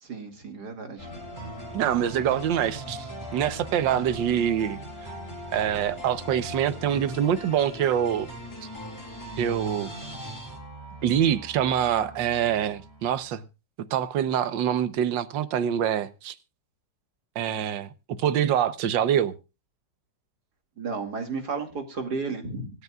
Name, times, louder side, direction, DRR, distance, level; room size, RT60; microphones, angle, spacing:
voice 1, 0.0-1.3 20.8-22.7, right 4 dB, 60° right, 2.8 m, -33 dB
sound 1, 1.0-13.3, equal, 10° left, 7.6 m, -40 dB
voice 2, 1.7-4.8 5.5-8.3 9.4-9.9 11.0-13.4 13.9-16.3 17.4-17.9 18.2-19.3, right 9 dB, 80° right, 1.6 m, -25 dB
26.0 x 9.5 x 2.4 m
omnidirectional pair, 2.0 m